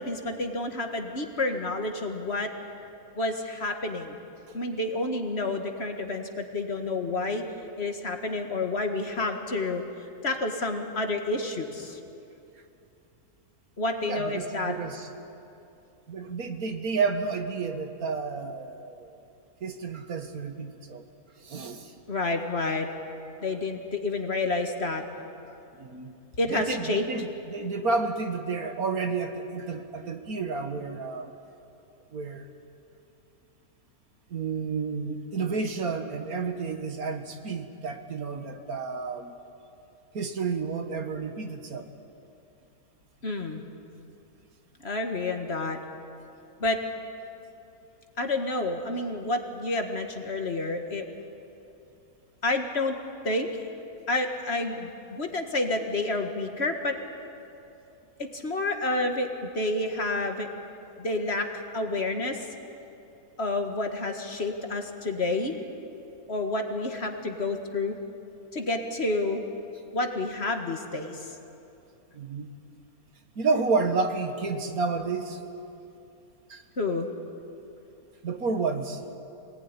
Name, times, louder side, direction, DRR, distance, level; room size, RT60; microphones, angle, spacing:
voice 1, 0.0-2.5 3.2-4.2 4.5-7.4 7.8-9.8 10.2-12.0 13.8-14.7 22.1-22.9 23.4-25.0 26.4-27.0 43.2-43.6 44.8-45.8 46.6-46.8 48.2-51.0 52.4-52.9 53.2-53.6 54.1-56.9 58.2-60.5 61.0-62.4 63.4-65.6 66.3-68.0 68.5-69.4 69.9-71.3 76.8-77.1, left 2 dB, 45° left, 4 dB, 2.0 m, -29 dB
voice 2, 14.1-15.1 16.1-19.1 19.6-21.1 21.4-21.9 25.8-26.1 26.5-31.3 32.1-32.5 34.3-39.3 40.1-41.9 72.2-72.5 73.4-75.4 76.5-76.6 78.2-79.0, right 4 dB, 70° right, 6 dB, 2.0 m, -30 dB
25.5 x 19.0 x 9.8 m, 2.8 s
omnidirectional pair, 1.6 m